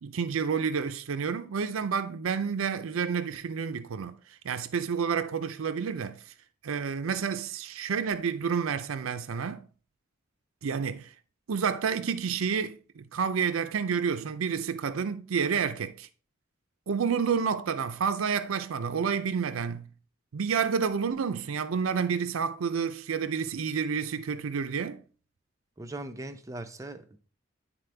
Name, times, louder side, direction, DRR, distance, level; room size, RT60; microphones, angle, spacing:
voice 1, 0.0-6.3 6.6-9.7 10.6-11.1 11.5-16.1 16.9-19.9 20.3-25.0, right 6 dB, 85° right, 0.5 m, -29 dB
voice 2, 25.8-27.2, right 2 dB, 15° right, 0.5 m, -39 dB
10.5 x 4.2 x 3.3 m
head